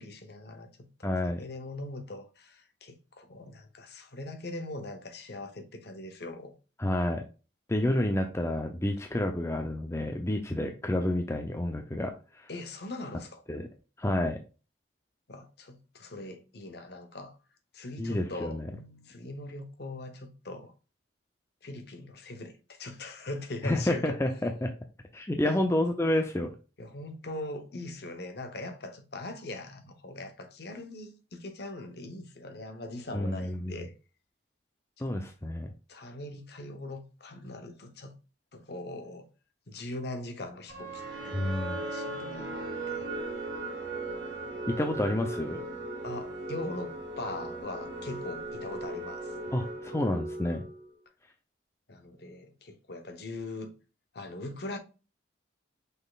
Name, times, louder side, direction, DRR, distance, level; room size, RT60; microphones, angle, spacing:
voice 1, 0.0-6.5 12.5-13.4 15.3-17.4 17.7-20.7 21.6-24.1 25.4-25.6 26.8-33.9 35.0-35.1 35.9-38.1 38.5-39.3 39.7-43.1 44.6-45.2 46.0-49.5 51.9-53.7 54.1-54.8, left 2 dB, 55° left, 0.8 m, -41 dB
voice 2, 1.0-1.4 6.8-7.2 7.7-12.5 13.5-13.7 14.0-14.4 18.0-18.7 23.6-24.7 25.1-26.5 33.1-33.8 35.0-35.7 41.3-41.8 44.8-45.6 49.5-50.6, left 1 dB, 15° left, 0.4 m, -29 dB
sound 1, 40.7-50.9, right 2 dB, 60° right, 1.8 m, -38 dB
5.3 x 4.1 x 2.3 m
head